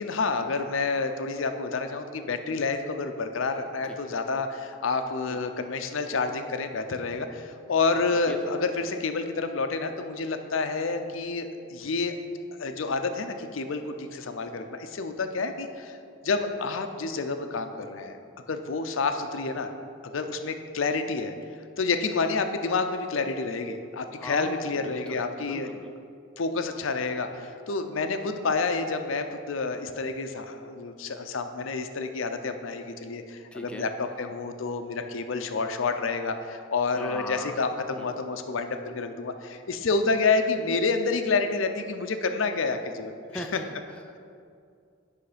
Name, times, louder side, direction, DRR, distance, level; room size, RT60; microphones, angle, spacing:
voice 1, 0.0-12.1 12.6-16.0 16.2-18.2 18.5-19.7 20.1-21.3 21.8-25.7 26.4-43.6, left 4 dB, 80° left, 7 dB, 0.6 m, -29 dB
voice 2, 8.0-8.4 24.2-25.9 33.5-34.3 37.0-38.2 43.3-44.2, left 1 dB, 5° left, 2 dB, 0.4 m, -40 dB
8.3 x 5.6 x 5.0 m, 2.4 s
head